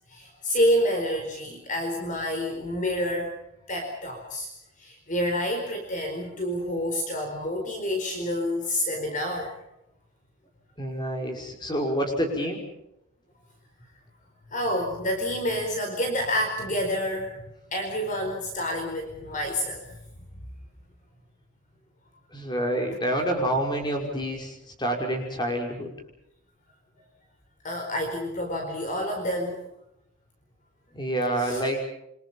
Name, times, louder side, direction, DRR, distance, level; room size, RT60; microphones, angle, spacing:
voice 1, 0.1-3.3 3.7-4.5 4.8-9.5 14.5-17.3 17.7-19.8 27.6-29.6 31.4-31.6, equal, 35° left, 3 dB, 4.6 m, -28 dB
voice 2, 10.8-12.6 22.3-25.9 30.9-31.8, right 1 dB, 20° left, 2 dB, 5.7 m, -28 dB
28.0 x 26.0 x 5.7 m, 0.81 s
head